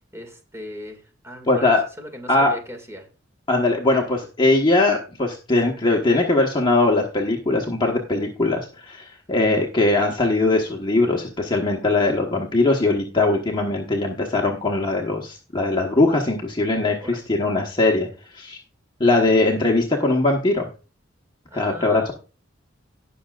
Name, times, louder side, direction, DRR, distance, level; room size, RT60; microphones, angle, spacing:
voice 1, 0.1-3.1 17.0-17.2 21.5-22.1, equal, 15° right, 4 dB, 2.2 m, -38 dB
voice 2, 1.5-1.8 2.3-2.5 3.5-18.1 18.3-18.6 19.0-20.6 21.5-22.1, left 2 dB, 25° left, 0 dB, 1.3 m, -20 dB
18.0 x 6.3 x 2.4 m, 0.35 s
head